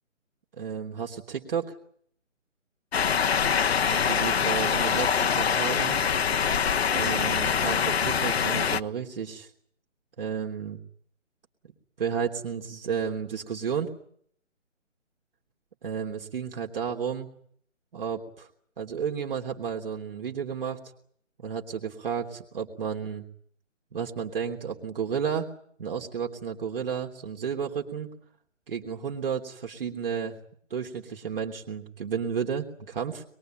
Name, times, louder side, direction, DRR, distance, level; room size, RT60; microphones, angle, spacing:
voice 1, 0.6-1.8 3.9-6.0 6.9-9.5 10.2-10.8 12.0-13.9 15.8-17.3 17.9-18.5 18.8-20.8 21.4-23.2 23.9-25.5 25.8-28.1 28.7-30.4 30.7-33.2, right 7 dB, 45° right, 1 dB, 3.2 m, -32 dB
sound 1, 2.9-8.8, left 7 dB, 55° left, 1.0 m, -24 dB
24.0 x 22.0 x 9.0 m, 0.63 s
figure-of-eight pair, 155°, 38 cm